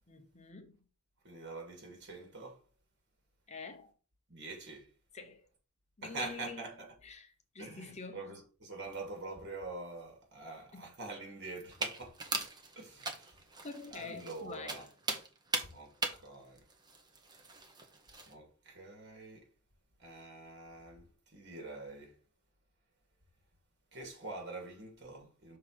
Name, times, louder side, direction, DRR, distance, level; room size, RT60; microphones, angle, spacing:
voice 1, 0.1-0.8 3.5-3.9 5.1-5.5 6.0-6.6 7.0-8.4 10.7-10.9 13.6-14.9, left 4 dB, 30° left, 0.8 m, -47 dB
voice 2, 1.2-2.6 4.3-4.9 6.0-6.9 7.6-12.2 12.7-13.4 13.9-14.8 15.6-16.6 18.3-19.4 20.0-22.1 23.9-25.6, right 3 dB, 55° right, 2.4 m, -45 dB
sound 1, 11.7-18.3, right 3 dB, 20° right, 1.0 m, -40 dB
6.3 x 3.8 x 4.6 m
head